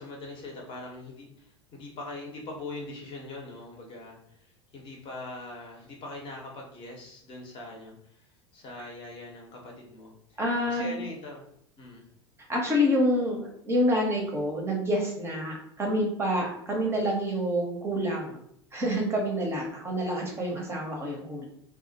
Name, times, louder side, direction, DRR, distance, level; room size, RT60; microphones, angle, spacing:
voice 1, 0.0-10.4 10.7-11.4 11.8-12.1, left 2 dB, 35° left, 0 dB, 0.8 m, -42 dB
voice 2, 10.4-11.0 12.5-18.4 18.7-21.4, equal, 15° right, -1 dB, 0.6 m, -27 dB
2.2 x 2.0 x 2.7 m, 0.71 s
figure-of-eight pair, 80°, 15 cm